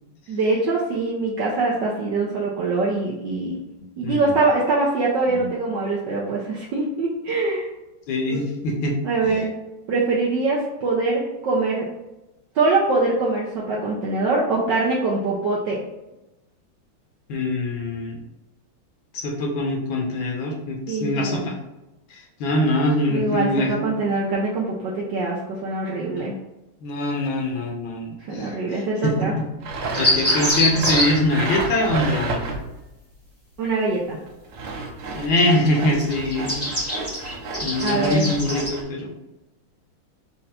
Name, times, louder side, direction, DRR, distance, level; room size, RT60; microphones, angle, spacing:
voice 1, 0.3-3.6 4.0-7.7 8.3-8.4 9.0-9.5 9.9-11.9 12.5-15.8 20.9-21.5 23.1-26.4 28.3-29.3 33.6-34.2 37.8-38.3, right 3 dB, 65° right, -4 dB, 1.2 m, -23 dB
voice 2, 8.1-9.0 9.2-9.4 17.3-18.2 19.1-21.5 22.1-23.9 26.1-26.2 26.8-29.4 30.0-32.4 35.2-36.7 37.6-39.1, left 1 dB, 70° left, 0 dB, 1.5 m, -24 dB
Sawing, 29.6-32.8 34.3-38.8, right 3 dB, 85° right, 1.7 m, -31 dB
sound 1, 29.9-31.0 35.4-35.7 35.9-38.7, left 1 dB, 10° left, 0.7 m, -23 dB
4.4 x 2.6 x 4.2 m, 0.98 s
omnidirectional pair, 2.4 m